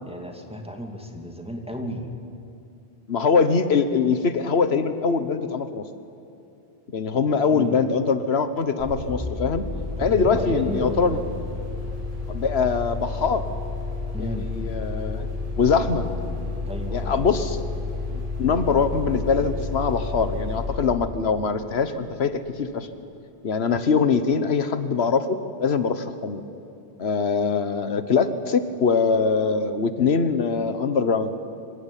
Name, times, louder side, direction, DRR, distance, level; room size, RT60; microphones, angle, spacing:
voice 1, 0.0-2.1 7.1-7.2 7.5-7.9 10.0-11.2 14.1-14.5 16.6-17.5, equal, 5° right, 2 dB, 2.5 m, -34 dB
voice 2, 3.1-5.9 6.9-9.6 10.0-11.2 12.3-13.4 14.2-15.3 15.6-16.1 16.9-17.6 18.1-22.9 23.4-26.4 27.0-31.4, left 5 dB, 90° left, 11 dB, 1.4 m, -23 dB
sound 1, 8.8-22.3, left 3 dB, 35° right, 7.5 m, -31 dB
25.0 x 16.0 x 10.0 m, 2.8 s
omnidirectional pair, 1.0 m